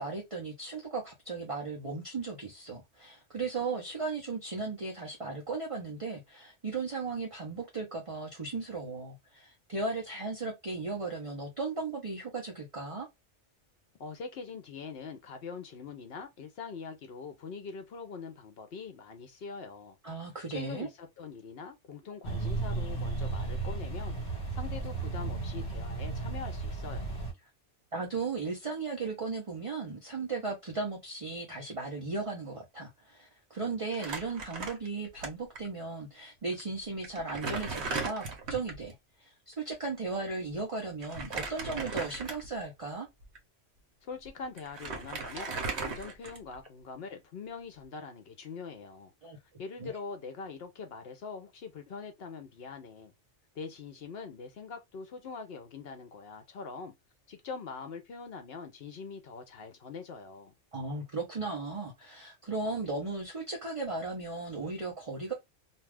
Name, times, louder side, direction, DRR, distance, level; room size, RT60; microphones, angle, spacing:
voice 1, 0.0-13.1 20.0-20.9 27.9-43.1 49.2-49.4 49.8-49.9 60.7-65.3, right 3 dB, 35° right, 0.7 m, -36 dB
voice 2, 14.0-20.0 20.5-27.3 44.0-49.1 49.6-53.1 53.5-56.9 57.3-60.5, left 5 dB, 60° left, 0.8 m, -43 dB
sound 1, 22.2-27.3, right 3 dB, 40° left, 1.4 m, -34 dB
Crumpling crinkling, 33.9-35.3 35.6-35.7 36.5-36.6 37.0-38.8 41.0-42.6 43.2-43.4 44.3-44.4 44.6-46.7, right 4 dB, 65° right, 1.2 m, -37 dB
2.6 x 2.3 x 3.3 m
omnidirectional pair, 1.2 m